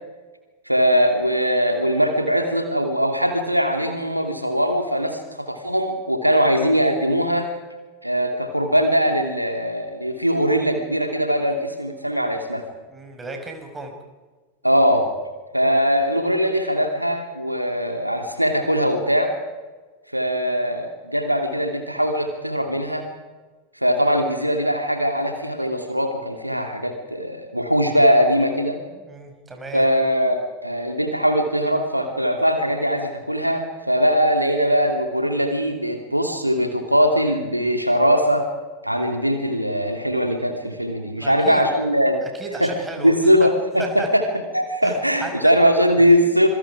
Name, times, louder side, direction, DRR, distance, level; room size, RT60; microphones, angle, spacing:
voice 1, 0.7-7.5 8.0-12.6 14.6-15.1 15.5-19.3 20.1-23.1 23.8-28.8 29.7-38.5 38.8-42.2 42.6-42.7 43.0-46.5, equal, 90° right, 5 dB, 2.8 m, -21 dB
voice 2, 12.9-13.9 28.9-29.9 41.2-41.6 42.3-43.1 43.4-43.5 43.8-44.1 44.8-45.5, right 3 dB, 10° right, 3 dB, 5.6 m, -34 dB
27.0 x 24.0 x 5.0 m, 1.3 s
figure-of-eight pair, 90°, 0 cm